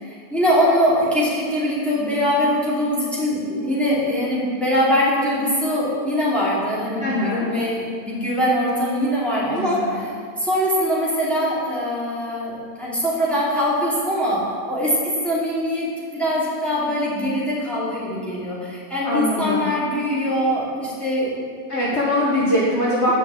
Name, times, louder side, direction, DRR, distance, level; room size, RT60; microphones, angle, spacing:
voice 1, 0.0-10.1 10.4-21.3, equal, ahead, -8 dB, 2.5 m, -22 dB
voice 2, 7.0-7.5 9.5-10.0 19.0-19.7 21.7-23.1, left 1 dB, 45° left, -7 dB, 1.5 m, -22 dB
8.4 x 6.1 x 7.4 m, 2.2 s
omnidirectional pair, 1.8 m